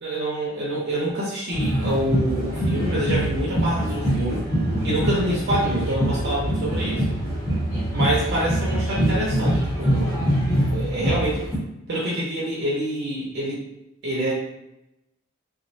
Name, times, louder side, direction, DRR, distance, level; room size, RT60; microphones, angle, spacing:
voice 1, 0.0-4.5 4.8-7.2 7.9-10.3 10.7-11.4 11.9-13.6 14.0-14.3, right 1 dB, 55° right, -5 dB, 0.5 m, -26 dB
sound 1, 1.5-11.6, equal, 15° left, 0.8 m, -24 dB
2.3 x 2.0 x 2.6 m, 0.88 s
head